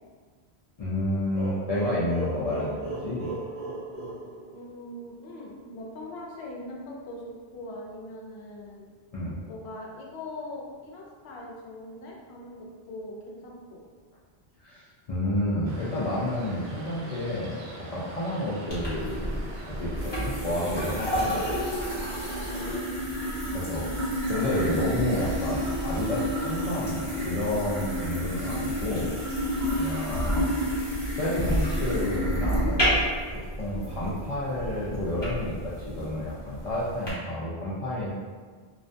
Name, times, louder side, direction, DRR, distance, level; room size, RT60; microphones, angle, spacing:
voice 1, 0.8-3.3 9.1-9.4 14.6-17.6 17.9-19.4 19.7-21.3 23.5-23.8 24.3-29.1 29.8-30.5 31.1-32.9 33.6-38.1, left 1 dB, 55° left, -9 dB, 0.4 m, -30 dB
sound 1, 1.3-5.1, right 1 dB, 40° right, 0.9 m, -37 dB
voice 2, 4.5-8.8 9.5-13.8 18.4-18.7 22.5-23.3 33.7-33.9, left 1 dB, 80° left, -2 dB, 0.8 m, -41 dB
sound 2, 15.6-22.8, right 1 dB, 80° right, 0.8 m, -44 dB
sound 3, 18.7-37.1, equal, 25° left, 0.8 m, -30 dB
2.4 x 2.2 x 2.5 m, 1.5 s
omnidirectional pair, 1.1 m